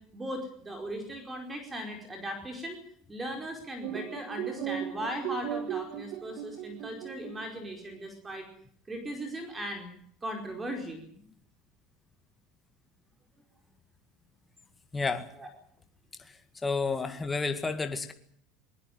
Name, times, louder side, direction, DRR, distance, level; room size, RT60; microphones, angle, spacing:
voice 1, 0.1-2.8 3.1-8.5 8.9-9.9 10.2-11.0 15.4-15.5, equal, 15° right, 4 dB, 4.8 m, -38 dB
sound 1, 3.8-7.5, right 10 dB, 60° right, 2.2 m, -37 dB
voice 2, 14.9-15.3 16.2-16.3 16.6-18.1, left 4 dB, 15° left, 8 dB, 2.0 m, -31 dB
20.0 x 19.0 x 9.4 m, 0.62 s
supercardioid pair, 135°, 0 cm